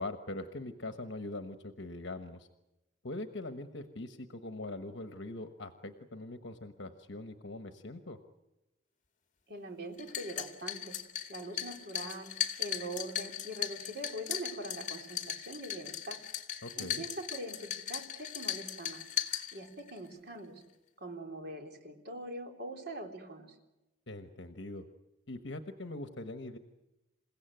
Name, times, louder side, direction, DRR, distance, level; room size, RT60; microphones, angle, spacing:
voice 1, 0.0-2.5 3.0-8.2 16.6-17.0 24.1-24.8 25.3-26.6, left 2 dB, 65° left, 7 dB, 1.2 m, -42 dB
voice 2, 9.5-11.0 11.3-12.3 12.6-16.2 16.8-19.0 19.5-20.6 21.0-23.6, right 1 dB, 55° right, 2 dB, 3.6 m, -43 dB
sound 1, 10.0-20.0, left 10 dB, 40° left, 2.0 m, -38 dB
28.5 x 16.5 x 9.1 m, 0.98 s
head